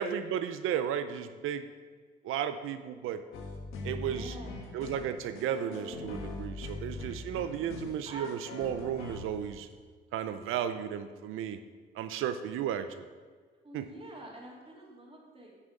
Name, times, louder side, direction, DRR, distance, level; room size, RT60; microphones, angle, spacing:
voice 1, 0.0-1.6 2.2-3.2 3.8-4.4 4.7-9.7 10.1-11.6 12.0-13.1 13.7-13.8, right 9 dB, 80° right, 9 dB, 0.6 m, -34 dB
sound 1, 3.3-9.7 10.4-10.5, left 3 dB, 85° left, 1.4 m, -41 dB
voice 2, 4.0-4.8 6.9-7.0 8.0-8.3 8.6-8.7 10.4-10.8 13.6-15.5, right 2 dB, 25° right, -3 dB, 3.1 m, -47 dB
9.8 x 6.1 x 5.1 m, 1.5 s
supercardioid pair, 60°, 21 cm